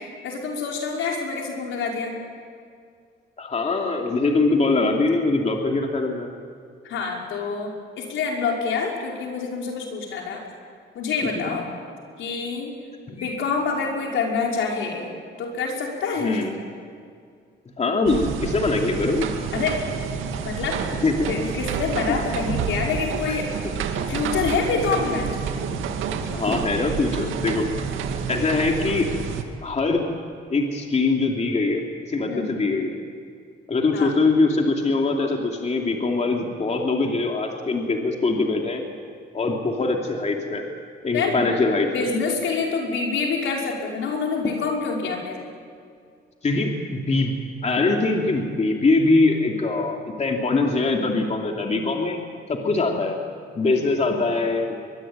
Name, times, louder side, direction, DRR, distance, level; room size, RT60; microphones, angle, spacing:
voice 1, 0.0-2.2 6.8-10.4 11.0-11.7 12.2-12.7 13.1-15.1 15.4-16.4 19.5-19.8 20.4-20.8 21.3-23.5 24.1-25.4 32.3-32.6 33.9-34.2 41.1-41.5 41.9-45.4, left 4 dB, 80° left, 0 dB, 5.5 m, -26 dB
voice 2, 3.4-6.3 11.4-11.5 13.2-13.4 16.2-16.6 17.8-19.3 21.0-21.3 26.3-27.7 28.3-29.1 29.6-30.1 30.5-32.9 33.7-38.8 39.3-40.7 41.0-42.1 46.4-47.4 47.6-52.2 52.5-53.2 53.5-54.7, left 3 dB, 35° left, 1 dB, 2.9 m, -22 dB
sound 1, 18.1-29.4, right 6 dB, 90° right, 2.2 m, -29 dB
23.0 x 22.5 x 9.1 m, 2.2 s
cardioid pair, 90°, 20 cm